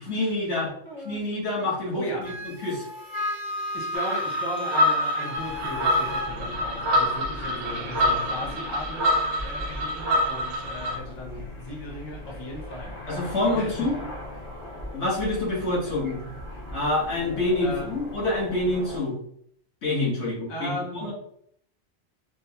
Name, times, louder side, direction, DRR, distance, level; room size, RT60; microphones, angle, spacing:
voice 1, 0.0-0.7 1.0-2.3 2.6-2.8 13.1-14.0 14.9-16.2 16.7-19.1 19.8-21.1, left 2 dB, 70° left, -5 dB, 1.4 m, -27 dB
voice 2, 0.6-1.2 1.6-2.3 3.7-13.0 13.5-13.9 15.8-15.9 17.6-17.9 20.5-21.1, left 1 dB, 25° left, -2 dB, 0.8 m, -37 dB
Wind instrument woodwind instrument, 2.2-6.3, left 1 dB, 50° right, 0.6 m, -33 dB
sound 1, 3.9-11.0, equal, 70° right, 0.9 m, -26 dB
sound 2, 5.3-19.0, left 1 dB, 50° left, 1.3 m, -39 dB
4.4 x 2.0 x 2.8 m, 0.68 s
omnidirectional pair, 1.2 m